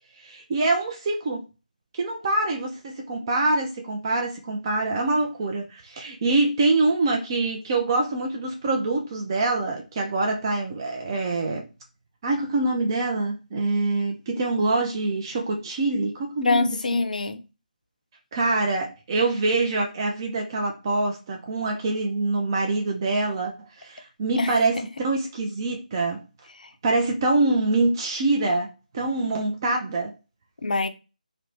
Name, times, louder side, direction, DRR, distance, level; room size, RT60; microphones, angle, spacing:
voice 1, 0.2-1.4 1.9-11.7 12.2-16.7 18.3-26.2 26.8-30.1, right 2 dB, 30° right, 0.4 m, -25 dB
voice 2, 16.4-17.4 24.4-24.6 26.6-26.7 30.6-30.9, left 3 dB, 65° left, 0.4 m, -24 dB
2.5 x 2.1 x 3.0 m
figure-of-eight pair, 155°, 5 cm